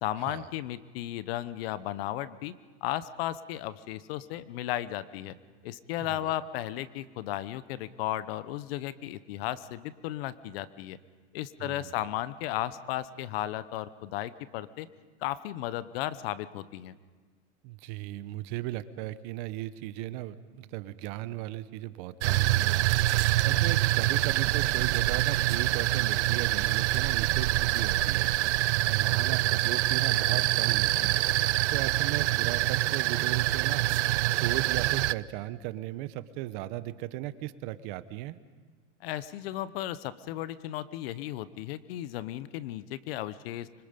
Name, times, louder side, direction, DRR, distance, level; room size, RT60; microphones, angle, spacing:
voice 1, 0.0-2.5 2.8-5.3 5.6-11.0 11.3-14.9 15.2-16.9 39.0-43.7, left 13 dB, 60° left, 16 dB, 0.9 m, -35 dB
voice 2, 11.6-12.0 17.6-22.8 23.4-28.3 28.9-31.2 31.7-33.9 34.3-38.4, right 15 dB, 50° right, 14 dB, 0.9 m, -36 dB
sound 1, 22.2-35.1, right 17 dB, 80° right, 0.6 m, -25 dB
25.5 x 24.5 x 5.2 m, 1.4 s
supercardioid pair, 145°, 34 cm